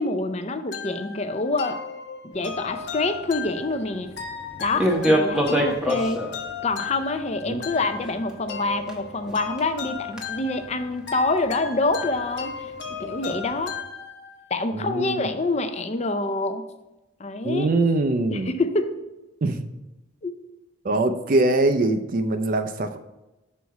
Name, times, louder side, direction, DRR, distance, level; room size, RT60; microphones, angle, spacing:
voice 1, 0.0-1.8 2.2-4.1 4.6-6.2 6.6-12.7 13.0-13.7 14.5-16.7 17.2-17.7 18.3-19.0 20.2-20.3, left 2 dB, 35° left, 8 dB, 0.5 m, -26 dB
sound 1, 0.7-14.5, left 6 dB, 60° left, 0.9 m, -36 dB
sound 2, 2.3-13.8, equal, 5° right, 0.7 m, -30 dB
voice 2, 14.7-15.2 17.4-18.5 19.4-19.7 20.8-23.1, right 2 dB, 45° right, 8 dB, 0.4 m, -23 dB
6.3 x 4.1 x 4.6 m, 1.0 s
head